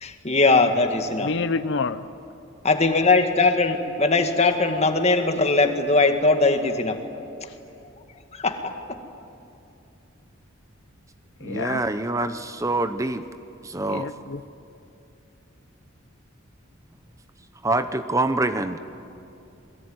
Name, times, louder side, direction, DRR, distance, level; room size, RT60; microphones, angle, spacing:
voice 1, 0.0-1.3 2.6-7.0 8.3-8.7, left 3 dB, 30° left, 6 dB, 2.0 m, -20 dB
voice 2, 1.2-2.0 11.4-11.8 13.9-14.4, left 4 dB, 60° left, 12 dB, 0.7 m, -28 dB
voice 3, 11.4-13.2 13.6-14.1 17.6-18.8, right 2 dB, 15° right, 10 dB, 0.7 m, -25 dB
27.5 x 22.0 x 9.6 m, 2.7 s
head